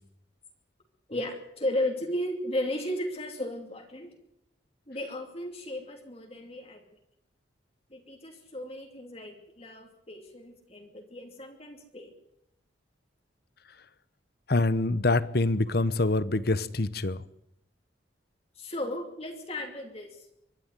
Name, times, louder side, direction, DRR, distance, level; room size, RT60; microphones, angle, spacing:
voice 1, 1.1-4.1 4.9-6.8 7.9-12.1 18.6-20.2, left 1 dB, 30° left, 2.7 m, -35 dB
voice 2, 14.5-17.2, left 2 dB, 55° left, 1.0 m, -25 dB
24.0 x 11.5 x 9.7 m
head